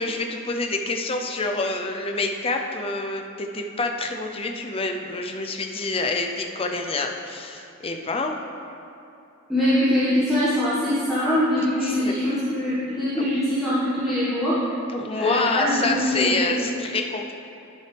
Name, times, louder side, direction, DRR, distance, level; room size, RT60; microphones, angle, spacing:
voice 1, 0.0-8.4 11.8-12.2 14.9-17.3, left 3 dB, 25° left, 3 dB, 0.5 m, -27 dB
voice 2, 9.5-14.6 15.2-16.6, equal, ahead, -13 dB, 1.6 m, -23 dB
11.5 x 6.3 x 3.4 m, 2.7 s
head